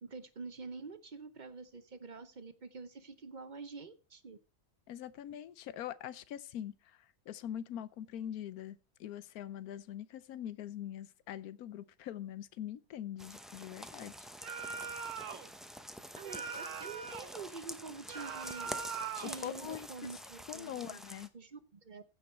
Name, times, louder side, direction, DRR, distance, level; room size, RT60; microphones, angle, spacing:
voice 1, 0.0-4.4 16.2-18.7 19.2-21.0 21.3-22.0, right 4 dB, 40° right, 0.7 m, -47 dB
voice 2, 4.9-14.3 19.2-19.9 20.5-21.3, left 11 dB, 90° left, 1.2 m, -43 dB
sound 1, 13.2-21.3, equal, ahead, 0.4 m, -47 dB
sound 2, 14.4-15.5 16.2-17.4 18.1-19.4, right 6 dB, 60° right, 1.3 m, -41 dB
15.5 x 5.4 x 4.3 m
omnidirectional pair, 1.5 m